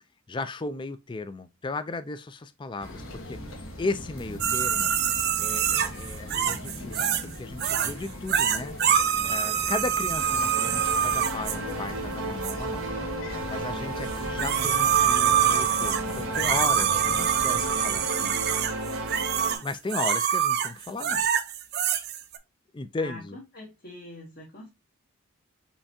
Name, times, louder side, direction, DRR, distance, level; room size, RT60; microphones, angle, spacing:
voice 1, 0.3-4.9 5.4-8.8 9.3-12.8 13.2-18.4 19.6-21.3 22.7-23.4, left 3 dB, 20° left, 0.3 m, -35 dB
sound 1, 2.8-18.0, left 1 dB, 65° left, 1.2 m, -40 dB
sound 2, 4.4-7.3 7.6-7.9 8.3-11.6 12.4-12.5 14.1-22.4, right 9 dB, 50° right, 0.5 m, -25 dB
sound 3, 10.2-19.6, right 2 dB, 90° right, 1.1 m, -33 dB
voice 2, 23.0-24.7, left 2 dB, 45° left, 1.1 m, -44 dB
5.6 x 3.3 x 2.7 m
head